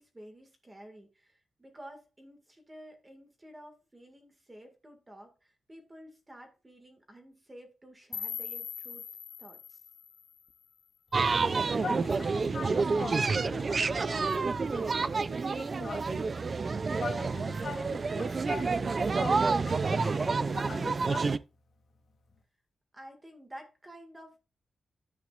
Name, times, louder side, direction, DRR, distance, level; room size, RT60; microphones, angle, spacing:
voice 1, 0.0-9.1 9.4-9.8 22.9-24.4, equal, 15° right, 1.8 m, -51 dB
sound 1, 8.1-11.1, left 7 dB, 65° left, 0.6 m, -42 dB
sound 2, 11.1-21.4, right 4 dB, 30° right, 0.3 m, -29 dB
voice 2, 11.7-16.4 17.0-21.4, left 5 dB, 50° left, 2.0 m, -43 dB
10.5 x 8.2 x 2.4 m
wide cardioid pair, 180°, 0 cm